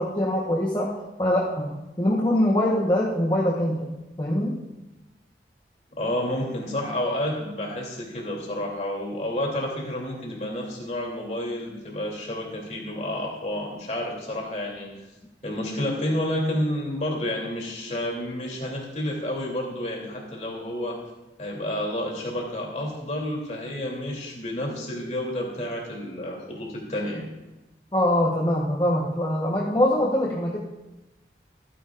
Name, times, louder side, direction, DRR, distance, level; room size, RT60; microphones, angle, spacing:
voice 1, 0.0-3.9 4.2-4.6 27.9-30.6, left 1 dB, 25° left, -3 dB, 1.2 m, -23 dB
voice 2, 6.0-14.9 15.4-21.0 21.4-27.2, left 1 dB, 40° left, -1 dB, 3.1 m, -30 dB
24.5 x 10.0 x 2.6 m, 1.0 s
head